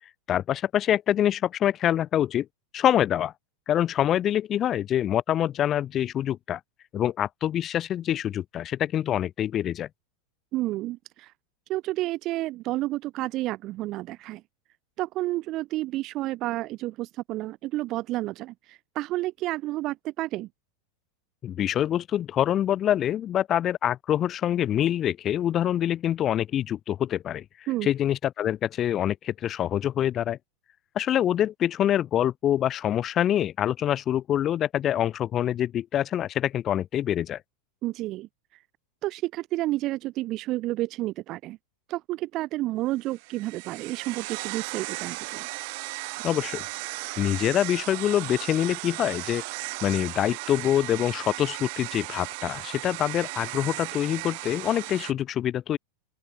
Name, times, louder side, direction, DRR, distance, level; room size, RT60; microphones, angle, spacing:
voice 1, 0.3-2.5 2.7-3.3 3.7-6.6 6.9-9.9 21.4-30.4 30.9-37.4 46.2-46.6 47.2-49.4 49.8-55.8, left 11 dB, 20° left, 0.8 m, -25 dB
voice 2, 10.5-11.3 11.7-14.4 15.0-20.5 27.7-27.9 37.8-38.3 39.0-41.6 41.9-45.5, right 17 dB, 30° right, 0.4 m, -30 dB
sound 1, 43.1-55.1, right 28 dB, 45° right, 3.2 m, -36 dB
open air
supercardioid pair, 175°, 0 cm